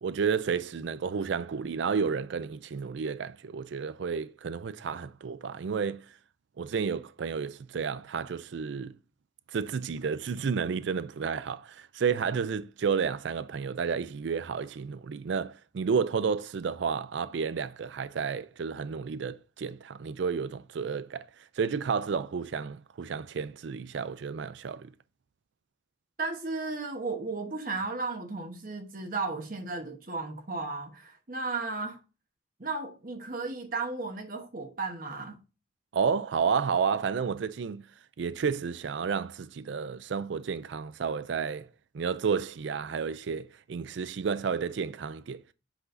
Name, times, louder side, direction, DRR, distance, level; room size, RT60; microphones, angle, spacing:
voice 1, 0.0-6.0 6.6-8.9 9.5-21.3 21.6-24.9 35.9-37.9 38.2-41.7 41.9-45.4, right 6 dB, 70° right, 0.4 m, -31 dB
voice 2, 26.2-32.0 32.6-35.4, right 3 dB, 45° right, 1.1 m, -34 dB
7.9 x 6.0 x 2.6 m
head